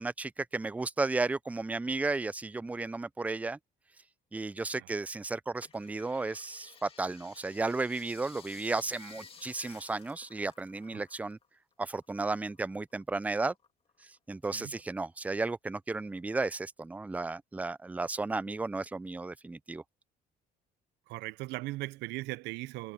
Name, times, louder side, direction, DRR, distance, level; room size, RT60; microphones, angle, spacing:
voice 1, 0.0-3.6 4.3-11.4 11.8-13.5 14.3-19.8, right 3 dB, 10° right, 0.4 m, -34 dB
sound 1, 5.6-11.5 11.7-13.0 13.5-14.3 14.8-14.9, left 5 dB, 35° left, 2.6 m, -54 dB
voice 2, 21.1-22.9, right 20 dB, 85° right, 0.5 m, -38 dB
cardioid pair, 110°, 17 cm